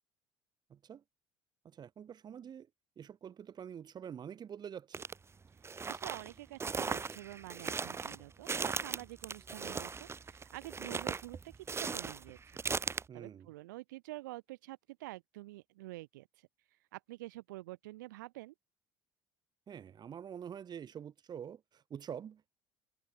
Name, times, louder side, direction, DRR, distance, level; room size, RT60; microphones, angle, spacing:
voice 1, 0.7-1.0 1.6-2.7 3.0-5.1 13.1-13.5 19.7-22.5, right 8 dB, 45° right, 4.7 m, -46 dB
sound 1, 4.9-5.1 5.6-13.0, right 5 dB, 25° right, 1.0 m, -38 dB
voice 2, 5.6-18.5, right 19 dB, 80° right, 2.5 m, -48 dB
hypercardioid pair, 65°, 10 cm